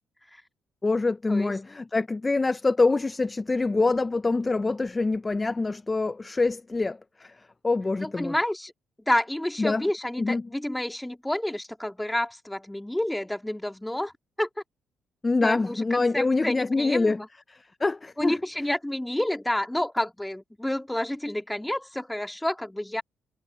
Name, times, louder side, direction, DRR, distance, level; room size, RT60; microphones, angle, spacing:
voice 1, 0.8-7.3 7.6-8.3 9.6-9.8 10.2-10.5 15.2-17.2 17.5-18.4, left 3 dB, 20° left, 0.5 m, -25 dB
voice 2, 8.0-8.7 9.1-14.1 14.4-14.5 15.4-17.3 18.2-23.0, left 1 dB, 5° left, 2.2 m, -29 dB
cardioid pair, 90°, 0 cm